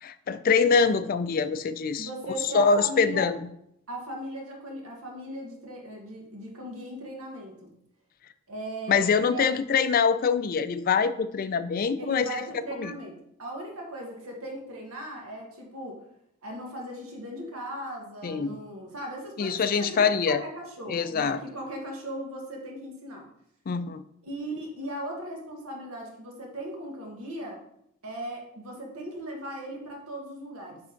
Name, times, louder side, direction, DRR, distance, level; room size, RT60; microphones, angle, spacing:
voice 1, 0.0-2.1 2.5-3.4 8.9-12.4 12.8-12.9 18.2-18.6 19.4-20.4 20.9-21.4 23.7-24.0, left 5 dB, 40° left, 12 dB, 0.3 m, -24 dB
voice 2, 2.0-3.3 3.9-7.7 8.5-9.4 12.0-16.0 16.4-23.3 24.2-27.6 28.0-30.8, equal, 70° right, 0 dB, 1.5 m, -38 dB
8.7 x 3.4 x 3.9 m, 0.77 s
head